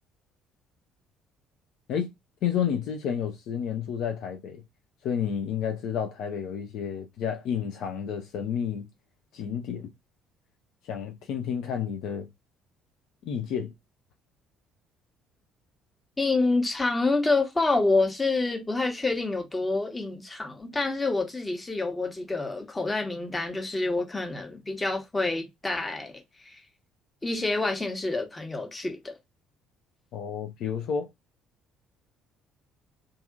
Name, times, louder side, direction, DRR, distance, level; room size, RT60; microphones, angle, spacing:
voice 1, 2.4-4.6 5.0-8.9 9.3-9.9 10.9-12.3 13.2-13.7 30.1-31.1, left 8 dB, 60° left, 0.5 m, -30 dB
voice 2, 16.2-26.6 27.2-29.2, left 3 dB, 20° left, 1.0 m, -27 dB
2.7 x 2.5 x 2.3 m
figure-of-eight pair, 50°, 0 cm